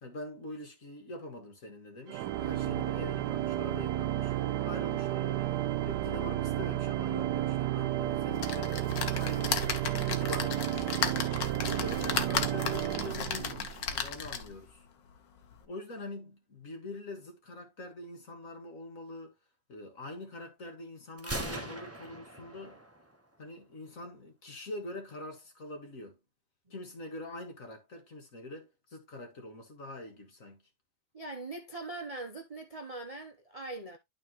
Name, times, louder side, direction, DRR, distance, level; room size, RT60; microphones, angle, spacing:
voice 1, 0.0-4.4 4.6-5.5 5.8-9.8 10.1-11.0 11.6-14.9 15.7-19.4 19.7-22.8 23.4-26.2 26.7-30.6, left 1 dB, 50° left, 2.0 m, -44 dB
Organ, 2.1-13.9, right 13 dB, 75° right, 1.2 m, -32 dB
sound 1, 8.4-14.6 15.2-15.3 15.5-15.6, left 7 dB, 85° left, 1.7 m, -35 dB
Gunshot gunfire, 21.2-23.1, right 1 dB, 10° right, 1.1 m, -40 dB
voice 2, 31.1-34.0, right 2 dB, 30° right, 0.7 m, -41 dB
12.0 x 4.0 x 3.0 m
omnidirectional pair, 1.9 m